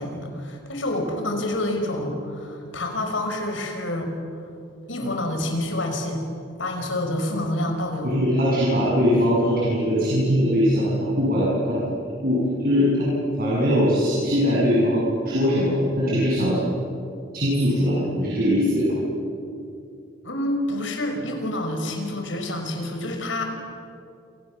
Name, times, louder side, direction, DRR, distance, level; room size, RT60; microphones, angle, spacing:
voice 1, 0.0-4.1 4.9-6.2 6.6-8.2 20.2-23.4, left 1 dB, 80° left, 4 dB, 5.6 m, -28 dB
voice 2, 8.0-11.8 12.2-13.1 13.4-16.6 17.3-18.9, equal, 50° right, -7 dB, 7.7 m, -21 dB
29.0 x 28.0 x 7.5 m, 2.5 s
head